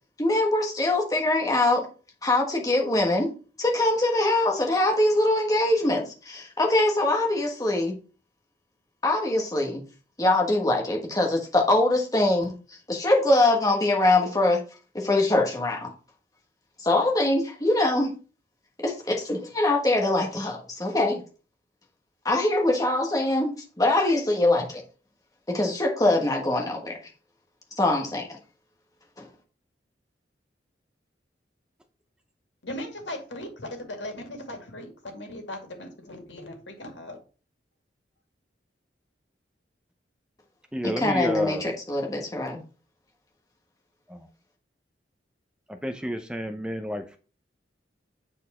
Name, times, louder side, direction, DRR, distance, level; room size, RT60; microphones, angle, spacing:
voice 1, 0.2-1.9 2.2-3.3 3.6-7.9 9.0-9.8 10.2-12.5 12.9-14.6 14.9-15.9 16.8-18.1 18.8-21.2 22.2-24.8 25.5-27.0 27.8-28.4 29.2-29.3 41.0-42.6, left 2 dB, 20° left, 1 dB, 1.4 m, -23 dB
voice 2, 32.6-37.2, left 1 dB, 85° left, 3 dB, 2.1 m, -38 dB
voice 3, 40.7-41.6 44.1-44.3 45.7-47.2, equal, 5° right, 7 dB, 0.6 m, -30 dB
8.3 x 4.5 x 4.2 m, 0.36 s
head